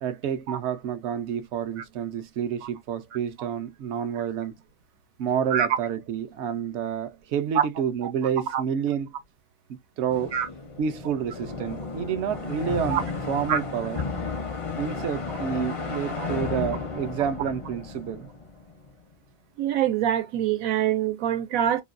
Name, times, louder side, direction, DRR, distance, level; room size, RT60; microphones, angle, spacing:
voice 1, 0.0-4.5 5.2-9.1 10.0-10.4 10.8-13.0 13.3-14.0 14.8-18.3, right 8 dB, 65° right, 0.8 m, -29 dB
sound 1, 10.1-18.9, left 4 dB, 40° left, 0.4 m, -33 dB
voice 2, 19.6-21.8, right 10 dB, 90° right, 1.1 m, -24 dB
2.7 x 2.2 x 2.4 m
omnidirectional pair, 1.4 m